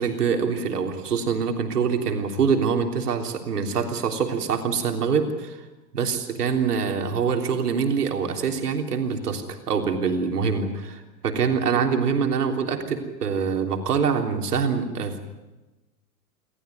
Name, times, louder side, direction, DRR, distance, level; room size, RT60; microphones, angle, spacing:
voice 1, 0.0-5.6 5.9-15.2, right 6 dB, 85° right, 4 dB, 3.6 m, -25 dB
28.0 x 14.0 x 9.6 m, 1.1 s
hypercardioid pair, 110°, 45 cm